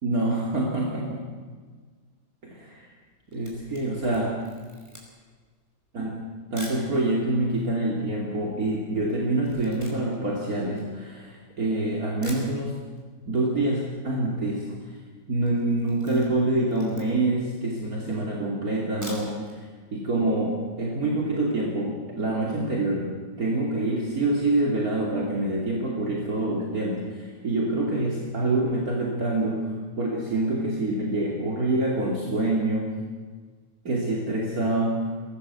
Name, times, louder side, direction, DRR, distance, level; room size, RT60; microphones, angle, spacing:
voice 1, 0.0-1.2 2.4-2.9 3.3-4.3 5.9-6.2 6.5-12.8 13.3-14.8 15.3-19.7 19.9-32.9 33.8-35.1, right 2 dB, 60° right, -2 dB, 3.2 m, -26 dB
Camera, 3.2-6.9 7.6-7.7 7.9-11.5 11.9-12.0 12.2-13.1 13.3-13.4 13.7-13.8 14.0-14.5 14.8-15.0 15.4-17.4 17.9-18.0 18.8-19.6 19.9-20.0 20.4-20.5, equal, 10° right, 5.4 m, -46 dB
22.5 x 18.0 x 8.2 m, 1.5 s
omnidirectional pair, 1.7 m